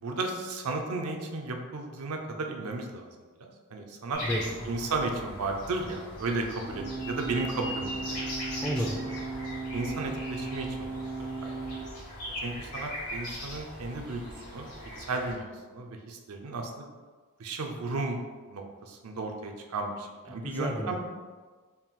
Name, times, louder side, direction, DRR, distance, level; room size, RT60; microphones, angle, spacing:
voice 1, 0.0-3.1 3.4-4.2 4.7-8.3 9.4-11.0 11.4-11.5 12.4-14.7 15.1-16.9 17.4-18.2 18.5-21.0, right 3 dB, 75° right, 3 dB, 0.5 m, -34 dB
sound 1, 4.1-15.3, left 1 dB, 75° left, 1.4 m, -40 dB
voice 2, 4.2-4.7 8.6-9.2 20.3-21.0, equal, 10° left, 0 dB, 0.3 m, -32 dB
sound 2, 6.7-11.8, right 3 dB, 55° left, 0.7 m, -36 dB
4.2 x 2.4 x 3.7 m, 1.4 s
head